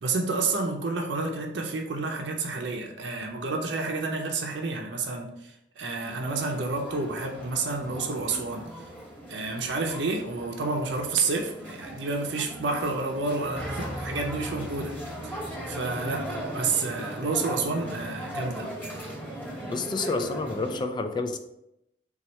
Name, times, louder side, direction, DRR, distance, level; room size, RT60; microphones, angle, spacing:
voice 1, 0.0-8.8 9.3-14.9 15.2-15.4 15.7-18.7, right 3 dB, 80° right, 2 dB, 0.5 m, -30 dB
sound 1, 6.3-20.8, equal, 10° left, 0.9 m, -38 dB
voice 2, 19.7-21.4, left 3 dB, 25° left, 7 dB, 0.3 m, -29 dB
4.1 x 2.3 x 4.2 m, 0.83 s
head